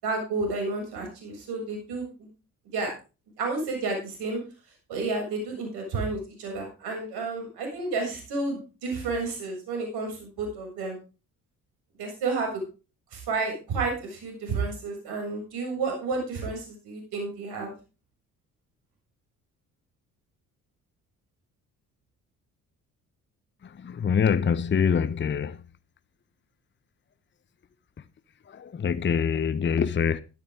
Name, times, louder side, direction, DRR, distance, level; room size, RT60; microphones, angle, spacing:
voice 1, 0.0-2.3 2.7-2.9 3.4-4.4 4.9-11.0 12.0-12.6 13.1-17.7, right 3 dB, 65° right, 7.4 m, -31 dB
voice 2, 23.6-25.6 28.5-30.2, left 7 dB, 25° left, 0.8 m, -25 dB
13.0 x 12.5 x 3.7 m
hypercardioid pair, 45°, 42 cm